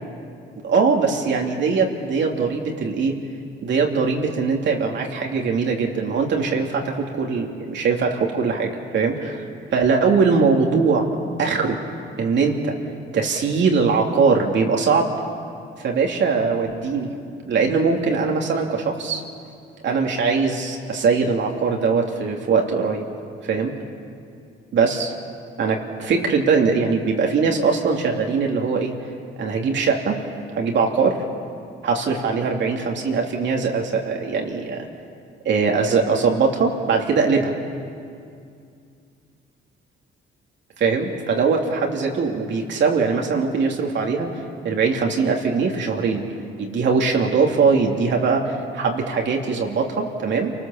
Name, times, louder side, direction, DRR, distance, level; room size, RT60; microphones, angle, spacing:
voice 1, 0.6-3.1 3.6-9.4 9.7-11.1 11.4-11.8 12.2-12.8 13.1-15.1 15.8-17.1 17.5-19.2 19.8-23.0 23.4-23.7 24.7-25.1 25.6-28.9 29.4-30.2 30.6-31.2 31.8-34.9 35.4-37.5 40.8-44.3 44.6-46.2 46.6-50.5, right 5 dB, 65° right, 1 dB, 2.9 m, -21 dB
29.0 x 19.0 x 7.1 m, 2.4 s
cardioid pair, 90°, 20 cm